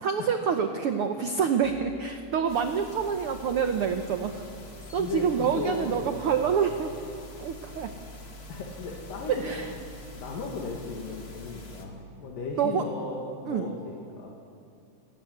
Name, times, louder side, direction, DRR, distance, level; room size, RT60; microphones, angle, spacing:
voice 1, 0.0-4.5 4.9-6.9 7.4-7.9 9.3-9.7 12.6-12.8 13.5-13.7, right 7 dB, 80° right, 6 dB, 1.2 m, -27 dB
sound 1, 1.6-3.5 4.0-4.1 4.4-7.9, right 2 dB, 15° left, 1.6 m, -52 dB
sound 2, 2.5-11.8, left 1 dB, 30° left, 2.3 m, -45 dB
voice 2, 5.0-6.2 8.5-14.3, left 3 dB, 80° left, -1 dB, 3.7 m, -36 dB
29.0 x 12.5 x 9.6 m, 2.4 s
omnidirectional pair, 3.8 m